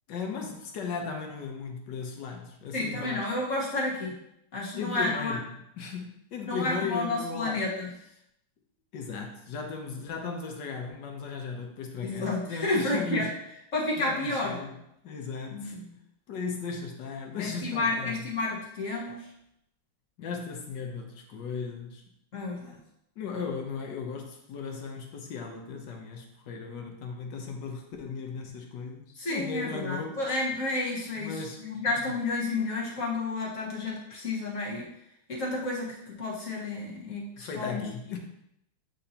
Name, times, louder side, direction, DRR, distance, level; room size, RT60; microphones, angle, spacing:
voice 1, 0.1-3.3 4.8-5.5 5.8-7.6 8.9-13.3 14.0-15.8 16.3-18.3 20.2-22.0 23.2-30.2 31.2-32.1 37.4-38.2, left 5 dB, 60° left, 2 dB, 1.4 m, -37 dB
voice 2, 2.7-4.2 4.5-5.4 6.4-7.9 12.0-13.3 13.7-14.6 15.5-15.9 17.4-19.2 22.3-22.8 29.1-34.9 35.3-37.8, left 2 dB, 40° left, -4 dB, 1.6 m, -31 dB
8.4 x 4.0 x 2.8 m, 0.79 s
omnidirectional pair, 2.3 m